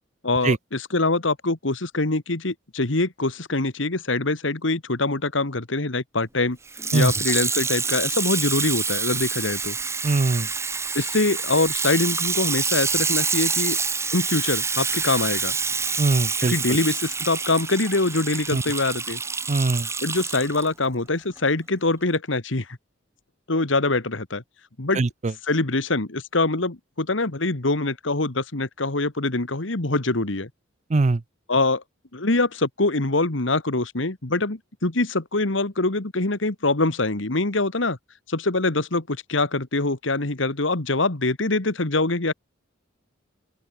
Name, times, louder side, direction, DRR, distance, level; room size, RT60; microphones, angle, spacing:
voice 1, 0.2-6.6 6.9-9.8 10.9-13.8 14.1-15.5 16.4-19.2 20.0-22.7 23.5-24.4 24.8-25.0 25.4-30.5 31.5-31.8 32.1-38.0 38.3-42.3, left 2 dB, 75° left, 2.0 m, -24 dB
Water tap faucet / Sink (filling or washing), 6.7-20.7 21.4-21.5, right 5 dB, 15° right, 1.0 m, -27 dB
voice 2, 10.0-10.5 16.0-16.5 18.5-18.6 19.5-19.9 24.9-25.3 30.9-31.2, right 3 dB, 35° right, 0.5 m, -21 dB
open air
head